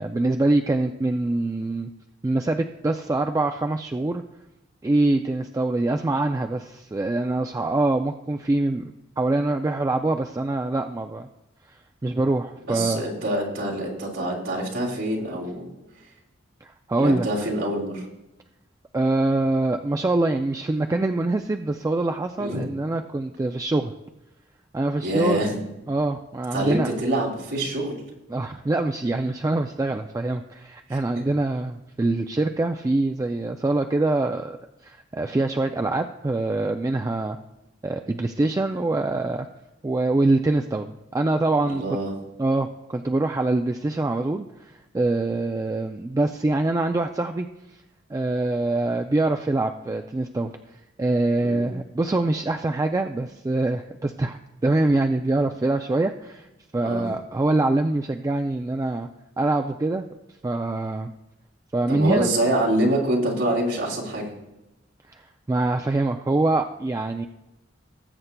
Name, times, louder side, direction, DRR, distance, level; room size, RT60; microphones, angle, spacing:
voice 1, 0.0-1.9 2.2-4.2 4.8-11.3 11.7-11.8 12.0-13.0 16.6-17.5 18.9-23.9 24.7-25.4 25.9-27.0 28.3-34.6 34.8-37.4 37.8-39.5 39.8-41.8 42.4-47.5 48.1-50.5 51.0-56.5 56.7-59.1 59.4-60.1 60.4-61.1 61.7-62.3 65.1-65.2 65.5-67.3, right 2 dB, 15° right, 5 dB, 0.3 m, -24 dB
voice 2, 12.7-15.7 17.0-18.0 22.4-22.6 25.0-25.6 26.5-28.0 30.9-31.0 41.6-42.1 51.4-51.7 56.8-57.0 61.9-64.3, right 1 dB, 85° right, -4 dB, 3.1 m, -25 dB
19.5 x 7.9 x 2.2 m, 0.96 s
head